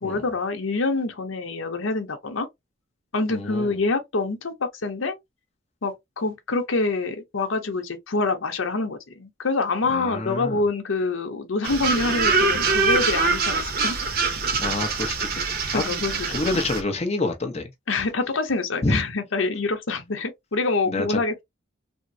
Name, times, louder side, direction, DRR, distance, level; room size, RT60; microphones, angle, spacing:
voice 1, 0.0-2.5 3.1-5.2 5.8-14.0 15.7-16.4 17.9-21.4, left 3 dB, 85° left, 0.8 m, -26 dB
voice 2, 3.3-3.8 9.9-10.6 14.6-17.7 18.8-19.0 20.9-21.2, left 2 dB, 30° left, 0.7 m, -28 dB
sound 1, 11.6-16.8, right 4 dB, 50° right, 0.6 m, -24 dB
3.6 x 2.0 x 2.6 m
head